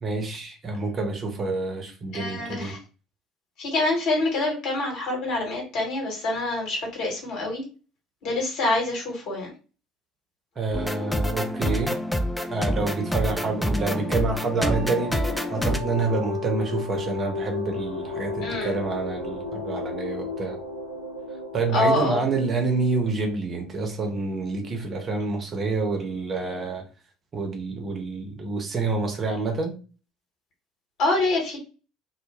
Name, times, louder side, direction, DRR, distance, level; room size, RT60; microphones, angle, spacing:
voice 1, 0.0-2.8 10.6-12.0 12.5-20.6 21.5-26.9 27.3-29.8, right 3 dB, 35° right, 0.7 m, -28 dB
voice 2, 2.1-2.8 3.6-7.6 8.2-9.5 18.4-18.8 21.7-22.2 31.0-31.6, left 2 dB, 55° left, 1.2 m, -26 dB
sound 1, 10.7-15.8, equal, 5° left, 0.4 m, -27 dB
sound 2, 13.2-23.4, left 3 dB, 90° right, 0.4 m, -34 dB
2.1 x 2.1 x 3.2 m
figure-of-eight pair, 60°, 0 cm